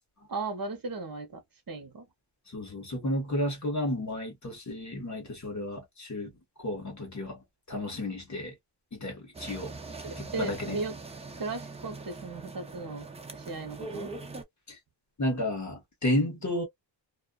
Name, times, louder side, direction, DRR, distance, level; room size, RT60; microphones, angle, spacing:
voice 1, 0.3-1.4 1.7-2.1 10.0-10.9 11.4-14.1, right 3 dB, 50° right, 0.9 m, -36 dB
voice 2, 2.5-6.3 6.6-8.6 8.9-9.7 10.2-10.8 14.7-14.8 15.2-16.6, left 1 dB, 40° left, 1.1 m, -32 dB
sound 1, 9.3-14.4, right 3 dB, 15° right, 0.4 m, -42 dB
2.5 x 2.4 x 2.3 m
wide cardioid pair, 165°, 45 cm